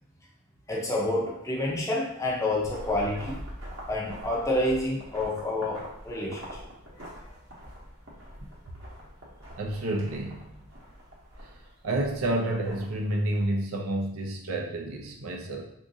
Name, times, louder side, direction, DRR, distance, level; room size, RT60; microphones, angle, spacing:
voice 1, 0.7-3.4 3.9-6.6 6.9-7.1, left 1 dB, 15° left, -3 dB, 0.6 m, -29 dB
sound 1, 2.6-13.4, equal, 60° right, 0.9 m, -45 dB
voice 2, 9.6-10.7 11.4-11.5 11.8-15.6, right 1 dB, 80° right, 1 dB, 0.6 m, -30 dB
3.6 x 2.6 x 2.7 m, 0.79 s
head